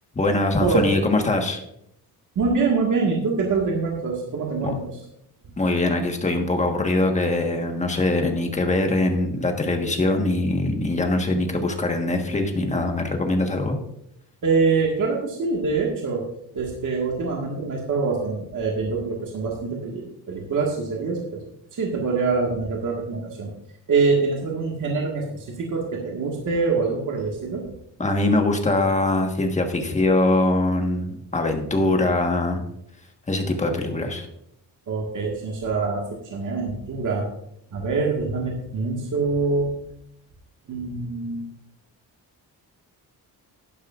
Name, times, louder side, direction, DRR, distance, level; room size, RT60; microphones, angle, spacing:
voice 1, 0.1-1.6 4.6-4.7 5.6-13.8 28.0-32.6 33.3-34.3, left 2 dB, 20° left, 3 dB, 1.4 m, -22 dB
voice 2, 2.4-4.9 14.4-16.2 16.5-21.4 21.7-23.5 23.9-27.6 34.9-36.0 36.3-37.3 37.7-39.7 40.7-41.5, right 4 dB, 50° right, -1 dB, 1.8 m, -24 dB
11.5 x 11.0 x 2.5 m, 0.75 s
cardioid pair, 150°, 39 cm